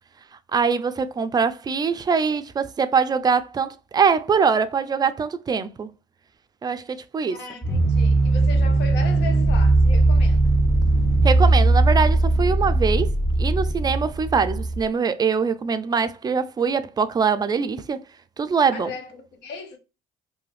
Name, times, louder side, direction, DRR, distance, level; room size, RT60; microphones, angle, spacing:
voice 1, 0.5-5.9 6.6-7.4 11.2-13.1 13.4-18.0 18.4-18.9, right 5 dB, 25° right, 0.3 m, -23 dB
voice 2, 7.3-10.5 18.7-19.8, left 4 dB, 85° left, 0.9 m, -36 dB
sound 1, 7.6-14.8, right 2 dB, ahead, 1.3 m, -19 dB
2.6 x 2.3 x 3.2 m
cardioid pair, 110°, 17 cm